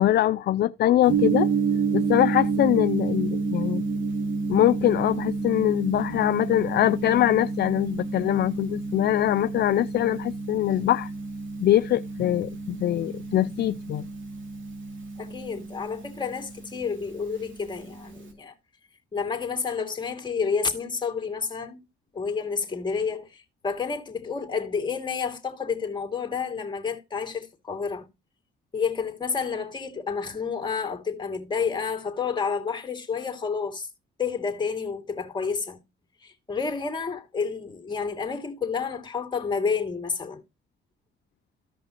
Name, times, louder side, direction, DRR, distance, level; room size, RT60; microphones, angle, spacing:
voice 1, 0.0-1.5 1.9-3.8 4.5-11.1 11.6-14.1, left 13 dB, 55° left, 0.4 m, -23 dB
Gong, 1.1-18.3, right 4 dB, 75° right, 2.8 m, -30 dB
voice 2, 15.2-18.5 19.1-21.8 22.1-28.1 28.7-33.9 34.2-35.8 36.2-40.4, left 5 dB, 25° left, 2.3 m, -30 dB
14.5 x 5.4 x 2.8 m
cardioid pair, 90°, 20 cm